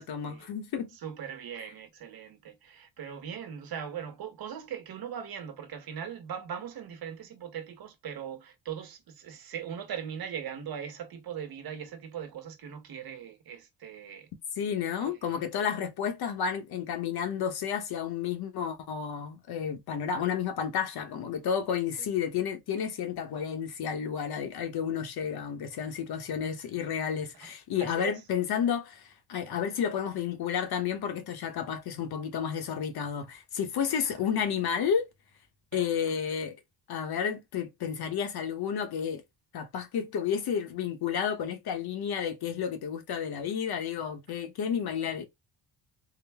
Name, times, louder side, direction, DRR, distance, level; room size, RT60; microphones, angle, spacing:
voice 1, 0.0-0.9 14.6-35.1 35.7-36.6 36.9-39.2 39.5-45.2, left 7 dB, 65° left, 1.1 m, -31 dB
voice 2, 1.0-14.3 15.0-15.7 22.0-22.1 27.8-28.1 35.7-35.8, right 8 dB, 60° right, 1.1 m, -40 dB
3.8 x 2.2 x 3.4 m
cardioid pair, 110°, 41 cm